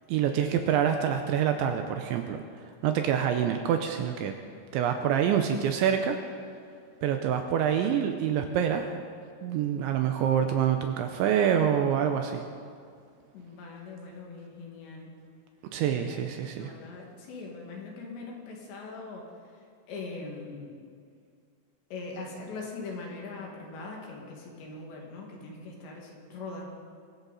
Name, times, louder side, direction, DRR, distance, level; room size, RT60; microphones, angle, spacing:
voice 1, 0.1-2.4 2.8-4.3 4.7-6.2 7.0-8.9 9.4-12.4 15.7-16.7, right 9 dB, 80° right, 5 dB, 2.8 m, -26 dB
voice 2, 13.3-15.1 15.9-19.3 19.5-20.7 21.9-26.7, left 3 dB, 65° left, -1 dB, 4.0 m, -41 dB
22.5 x 15.5 x 4.1 m, 2.2 s
omnidirectional pair, 5.8 m